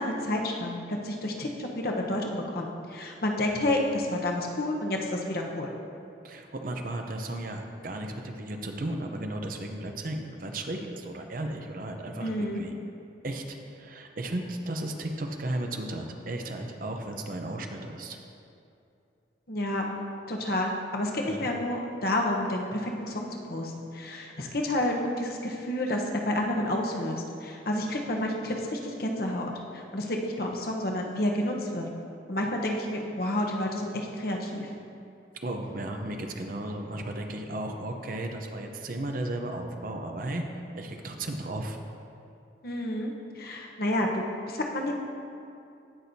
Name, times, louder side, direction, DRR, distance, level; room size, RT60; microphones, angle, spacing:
voice 1, 0.0-5.7 12.2-12.6 19.5-20.0 20.3-31.9 32.3-34.7 42.6-45.0, left 1 dB, 55° left, 1 dB, 1.0 m, -30 dB
voice 2, 6.2-12.7 13.2-18.2 21.3-21.4 35.4-40.4 40.7-41.8, right 1 dB, 50° right, 3 dB, 0.6 m, -35 dB
16.5 x 6.1 x 2.7 m, 2.6 s
head